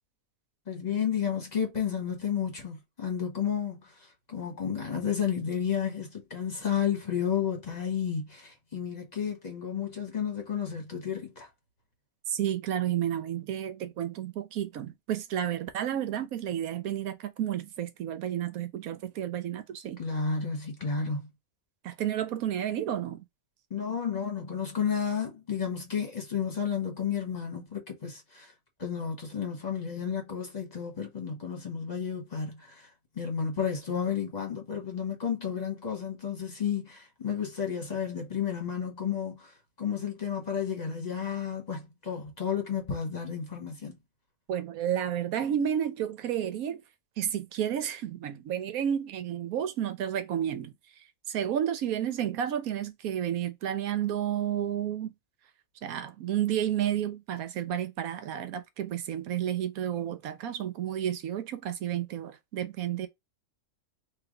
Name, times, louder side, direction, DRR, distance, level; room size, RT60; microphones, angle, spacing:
voice 1, 0.7-11.5 20.0-21.3 23.7-28.5 28.8-32.9 33.1-44.0, left 7 dB, 30° left, 1.3 m, -32 dB
voice 2, 12.3-20.0 21.8-23.2 44.5-46.8 47.2-50.7 51.3-55.1 55.8-63.1, right 10 dB, 90° right, 1.2 m, -31 dB
3.4 x 2.8 x 3.8 m
omnidirectional pair, 1.5 m